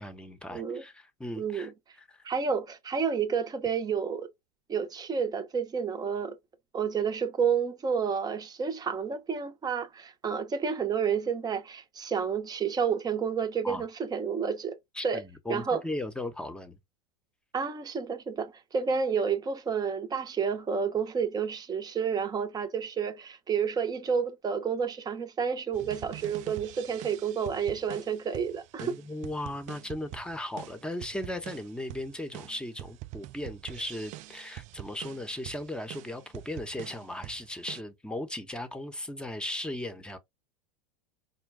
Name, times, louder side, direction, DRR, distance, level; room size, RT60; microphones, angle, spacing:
voice 1, 0.0-1.7 2.0-2.2 13.6-13.8 14.9-16.8 28.8-40.2, left 1 dB, 5° left, 0.9 m, -37 dB
voice 2, 0.5-0.8 1.4-1.7 2.2-4.3 4.7-6.3 6.7-14.8 15.0-15.2 15.5-15.8 17.5-28.9, right 6 dB, 20° right, 0.8 m, -30 dB
sound 1, 25.7-37.8, right 16 dB, 40° right, 0.4 m, -45 dB
5.2 x 2.2 x 3.4 m
hypercardioid pair, 105°, 19 cm